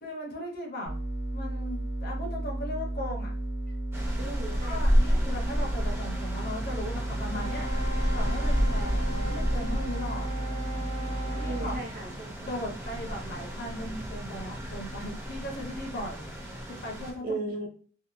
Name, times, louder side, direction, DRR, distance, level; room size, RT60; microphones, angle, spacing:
voice 1, 0.0-1.0 1.3-3.3 4.6-7.7 8.1-10.3 11.3-11.8 12.5-16.3 16.7-17.4, left 1 dB, 50° left, 1 dB, 0.7 m, -38 dB
sound 1, 0.9-11.8, right 1 dB, 70° left, 1.1 m, -33 dB
sound 2, 3.9-17.1, equal, 15° right, 0.4 m, -31 dB
voice 2, 4.2-5.4 11.5-12.5 17.2-17.7, right 2 dB, 50° right, 0 dB, 0.7 m, -37 dB
Wind instrument woodwind instrument, 7.3-11.8, equal, 85° right, 0.6 m, -39 dB
2.7 x 2.2 x 2.4 m, 0.43 s
head